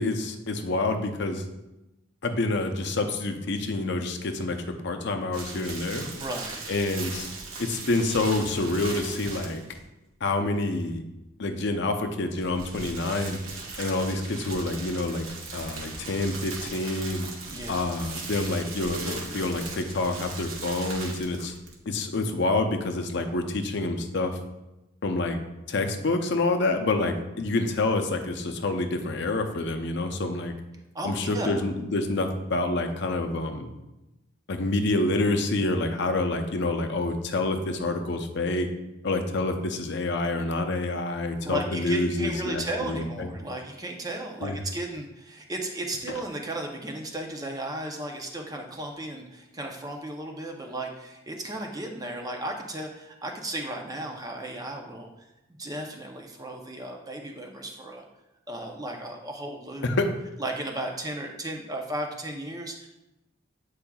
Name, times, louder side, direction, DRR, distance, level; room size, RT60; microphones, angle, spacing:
voice 1, 0.0-1.4 2.2-6.1 6.7-7.3 7.6-9.6 10.2-11.0 11.4-13.4 13.8-15.2 15.5-17.3 17.7-21.5 21.9-24.4 25.0-25.4 25.7-30.5 31.0-33.7 34.5-38.7 39.0-43.3 44.4-44.6 59.8-60.1, left 2 dB, 55° left, 5 dB, 0.6 m, -27 dB
sound 1, 5.3-9.8 12.3-21.8, right 3 dB, 85° right, 1.2 m, -39 dB
voice 2, 6.1-6.6 17.5-17.9 30.9-31.6 41.4-55.1 55.6-58.0 58.5-59.9 60.4-62.9, right 1 dB, 20° right, 2 dB, 0.6 m, -35 dB
8.7 x 4.7 x 2.3 m, 0.97 s
head